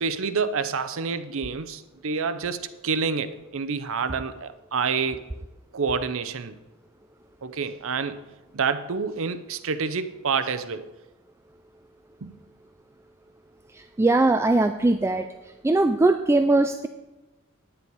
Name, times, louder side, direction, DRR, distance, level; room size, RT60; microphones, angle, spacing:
voice 1, 0.0-5.2 5.7-6.5 7.4-8.2 8.5-10.8 12.2-12.3, right 5 dB, 65° right, 11 dB, 0.7 m, -28 dB
voice 2, 13.7-15.3 15.6-16.9, right 2 dB, 10° right, 8 dB, 0.3 m, -20 dB
9.8 x 9.7 x 4.7 m, 1.1 s
head